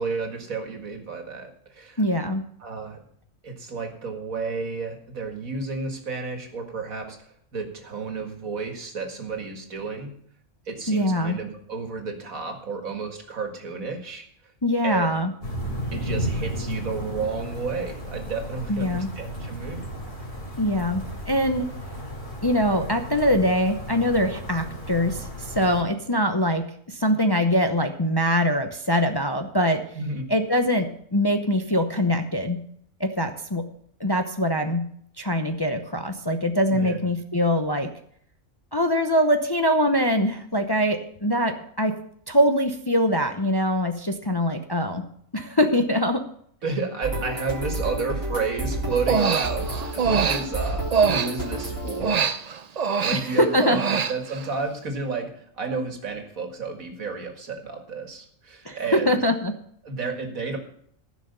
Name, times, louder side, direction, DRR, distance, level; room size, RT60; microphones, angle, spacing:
voice 1, 0.0-2.0 2.6-3.0 3.4-10.1 10.7-14.3 14.8-15.1 15.9-19.9 29.9-30.3 36.7-37.0 46.6-52.3 53.0-59.2 59.8-60.6, right 4 dB, 80° right, 4 dB, 2.3 m, -31 dB
voice 2, 2.0-2.4 10.9-11.4 14.6-15.3 18.7-19.1 20.6-21.6 22.4-29.8 30.3-32.6 33.0-33.7 34.0-34.9 35.2-37.9 38.7-41.9 42.3-45.1 45.3-46.2 53.1-53.8 58.7-59.5, equal, 25° left, 6 dB, 0.6 m, -23 dB
sound 1, 15.4-25.8, equal, 45° left, 3.4 m, -34 dB
sound 2, 47.0-52.0, right 2 dB, 15° right, 3.1 m, -30 dB
Human voice, 48.9-51.6 52.0-54.5, right 6 dB, 50° right, 0.5 m, -24 dB
14.5 x 6.3 x 6.7 m, 0.64 s
omnidirectional pair, 1.4 m